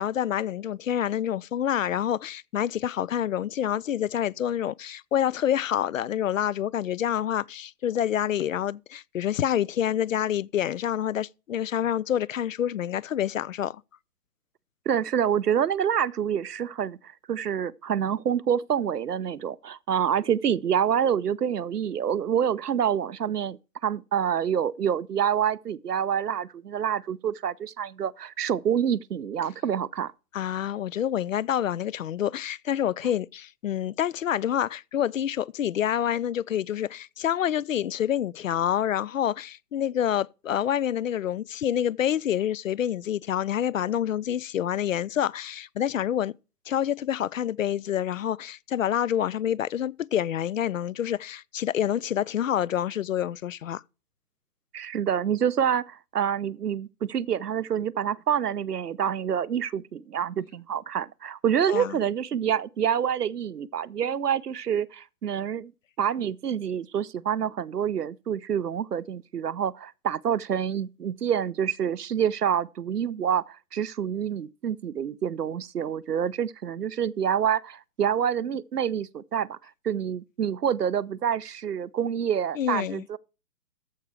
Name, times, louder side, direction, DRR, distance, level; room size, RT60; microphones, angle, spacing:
voice 1, 0.0-13.8 30.3-46.3 46.7-53.8 61.7-62.0 82.5-83.0, left 10 dB, 60° left, 0.5 m, -27 dB
voice 2, 14.9-17.0 17.3-30.1 54.7-65.7 66.0-83.2, right 8 dB, 85° right, 0.8 m, -27 dB
14.0 x 5.7 x 4.7 m
hypercardioid pair, 145°, 46 cm